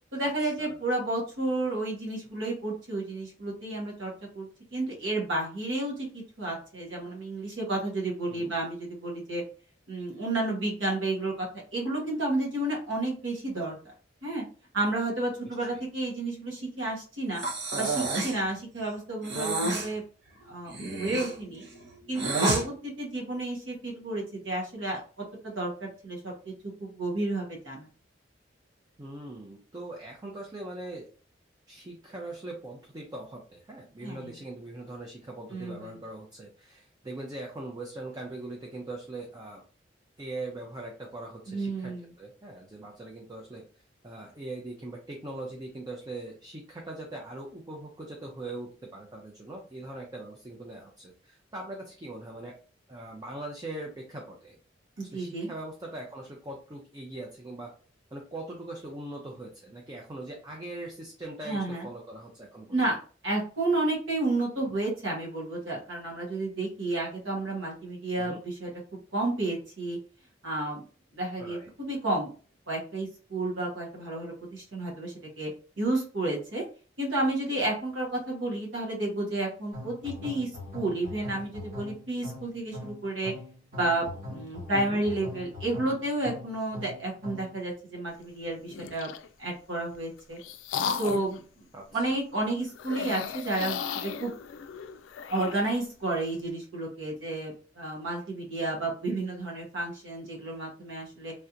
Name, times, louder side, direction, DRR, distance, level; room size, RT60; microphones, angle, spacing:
voice 1, 0.1-9.4 9.9-13.7 14.2-14.4 14.7-17.5 17.7-20.0 20.5-21.6 22.1-26.5 26.8-27.9 34.0-34.3 35.5-36.0 41.5-42.1 55.0-55.5 61.4-61.9 62.7-63.0 63.2-68.7 69.1-70.0 70.4-70.8 71.1-72.3 72.7-75.5 75.8-76.6 77.0-83.3 83.7-89.1 89.4-90.4 91.0-91.6 91.9-94.3 95.3-101.3, right 2 dB, 90° right, -2 dB, 1.1 m, -31 dB
Breathing, 17.4-18.4 19.2-19.9 20.7-22.6, right 2 dB, 65° right, 0.8 m, -29 dB
voice 2, 29.0-31.1 31.7-39.6 40.2-43.6 44.0-52.6 52.9-54.6 55.0-57.7 58.1-62.8 68.2-68.4 71.4-71.7 84.7-85.0 91.7-92.0, right 2 dB, 20° right, -1 dB, 0.5 m, -41 dB
sound 1, 79.7-87.6, left 1 dB, 50° right, 1.4 m, -42 dB
sound 2, 88.7-89.3 89.9-91.4 92.8-95.8, left 6 dB, 85° left, 0.3 m, -35 dB
3.2 x 2.8 x 2.4 m, 0.40 s
head